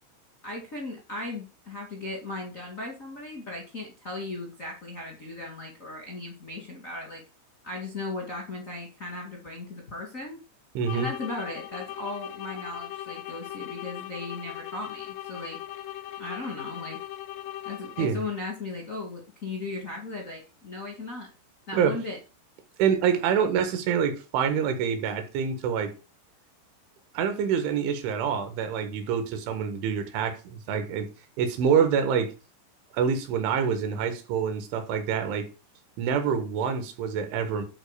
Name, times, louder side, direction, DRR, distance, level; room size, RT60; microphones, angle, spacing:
voice 1, 0.4-7.2 7.6-10.4 10.9-15.6 16.2-17.0 17.6-21.3 21.7-22.2, left 2 dB, 55° left, 0.8 m, -37 dB
sound 1, 10.8-18.3, left 13 dB, 80° left, 2.3 m, -39 dB
voice 2, 10.8-11.1 18.0-18.2 21.7-21.9 22.8-25.9 27.2-31.1 31.4-32.3 32.9-35.5 36.0-37.6, right 7 dB, 75° right, 3.8 m, -26 dB
11.0 x 4.3 x 6.7 m
omnidirectional pair, 5.7 m